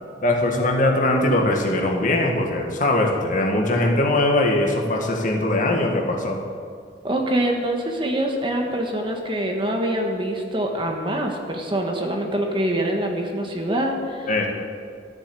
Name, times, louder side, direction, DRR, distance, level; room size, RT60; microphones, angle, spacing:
voice 1, 0.2-6.4 14.3-14.5, left 1 dB, 45° left, 1 dB, 1.7 m, -21 dB
voice 2, 7.0-14.5, right 1 dB, 25° right, 2 dB, 1.3 m, -25 dB
13.0 x 7.1 x 8.2 m, 2.2 s
head